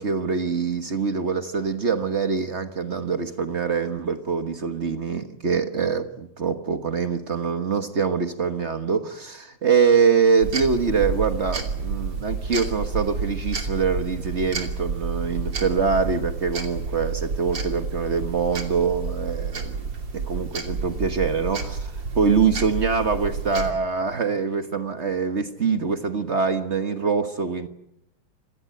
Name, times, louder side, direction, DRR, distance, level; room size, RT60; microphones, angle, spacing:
voice 1, 0.0-19.8 20.1-27.7, right 5 dB, 60° right, 0.7 m, -24 dB
sound 1, 10.4-23.7, right 4 dB, 40° right, 3.3 m, -30 dB
27.5 x 16.0 x 9.1 m
omnidirectional pair, 3.3 m